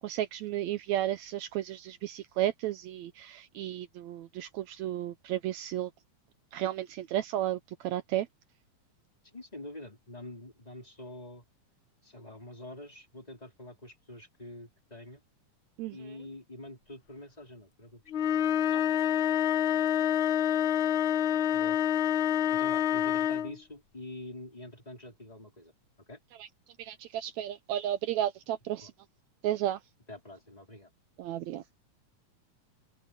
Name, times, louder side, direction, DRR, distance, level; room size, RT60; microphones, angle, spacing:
voice 1, 0.0-5.9 6.5-8.3 15.8-16.2 18.7-18.8 26.4-26.5 26.8-28.9 29.4-29.8 31.2-31.6, right 12 dB, 80° right, 1.7 m, -33 dB
voice 2, 9.2-11.4 12.0-15.2 15.9-18.0 21.5-21.8 22.5-25.7 26.1-26.2 28.8-28.9 30.1-30.9, left 1 dB, 10° left, 4.8 m, -46 dB
sound 1, 18.1-23.6, left 9 dB, 60° left, 1.4 m, -27 dB
open air
omnidirectional pair, 3.7 m